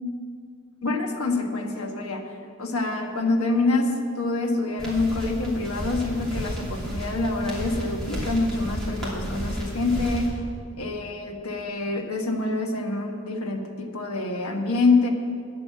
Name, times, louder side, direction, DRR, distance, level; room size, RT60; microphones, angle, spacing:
voice 1, 0.8-2.2 2.6-10.4 10.8-15.1, left 3 dB, 90° left, 3 dB, 1.3 m, -26 dB
sound 1, 4.8-10.3, equal, 5° left, 2.8 m, -32 dB
10.0 x 7.8 x 8.4 m, 2.3 s
head